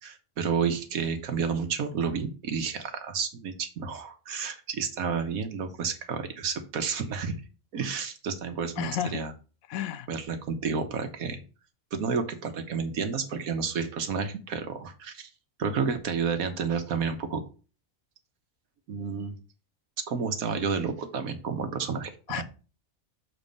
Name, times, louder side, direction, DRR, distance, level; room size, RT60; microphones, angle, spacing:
voice 1, 0.0-7.4 7.7-9.3 10.1-11.4 11.9-15.3 15.6-17.4 18.9-19.3 20.1-22.4, right 6 dB, 85° right, 1.5 m, -30 dB
voice 2, 8.8-9.2 9.7-10.1 22.3-22.4, left 11 dB, 90° left, 1.0 m, -31 dB
7.0 x 4.1 x 5.2 m
omnidirectional pair, 1.4 m